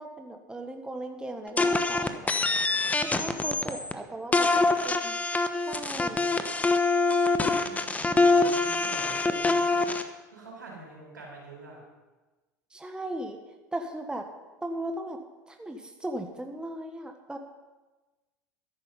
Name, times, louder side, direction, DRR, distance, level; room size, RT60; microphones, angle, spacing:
voice 1, 0.0-2.3 3.1-4.5 4.8-5.2 5.5-6.2 12.7-13.4 13.7-14.3 14.6-15.2 15.5-17.4, right 1 dB, 10° right, 4 dB, 1.5 m, -37 dB
sound 1, 1.6-3.9 4.3-10.0, left 3 dB, 15° left, 1.1 m, -24 dB
voice 2, 4.0-4.6 6.1-6.4 7.6-11.8, right 3 dB, 90° right, -3 dB, 5.2 m, -46 dB
13.0 x 11.0 x 5.5 m, 1.2 s
hypercardioid pair, 80°, 10 cm